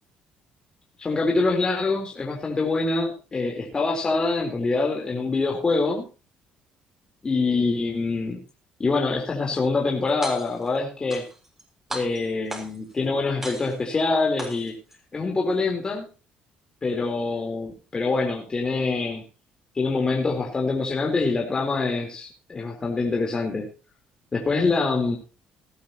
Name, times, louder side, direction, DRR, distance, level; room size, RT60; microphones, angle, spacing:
voice 1, 1.0-6.0 7.2-8.4 8.8-11.2 11.9-14.8 15.1-16.1 16.8-19.3 19.7-23.7 24.3-25.2, left 3 dB, 30° left, 0 dB, 4.1 m, -25 dB
sound 1, 10.1-10.7 11.1-11.6 11.9-12.9 13.4-14.0 14.4-15.0, right 1 dB, 15° right, 6.5 m, -35 dB
19.0 x 12.0 x 3.1 m, 0.33 s
cardioid pair, 90°, 3 cm